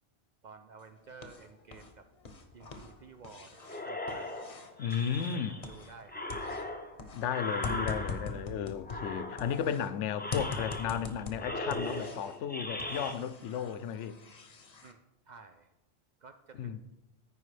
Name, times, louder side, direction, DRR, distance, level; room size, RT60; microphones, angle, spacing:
voice 1, 0.4-2.1 2.5-4.3 5.2-6.2 6.5-6.8 14.8-15.7 16.2-16.8, right 5 dB, 60° right, 0.5 m, -53 dB
sound 1, 0.8-1.9 2.2-6.0 6.3-9.9 10.3-12.4 12.8-14.9, left 4 dB, 40° left, 0.8 m, -43 dB
sound 2, 3.7-5.7 6.1-8.5 8.8-9.7 10.1-11.1 11.4-13.1, left 1 dB, 15° left, 0.4 m, -39 dB
voice 2, 4.8-5.6 7.1-14.2 16.5-16.8, left 8 dB, 90° left, 0.9 m, -34 dB
14.0 x 4.8 x 3.2 m
omnidirectional pair, 1.2 m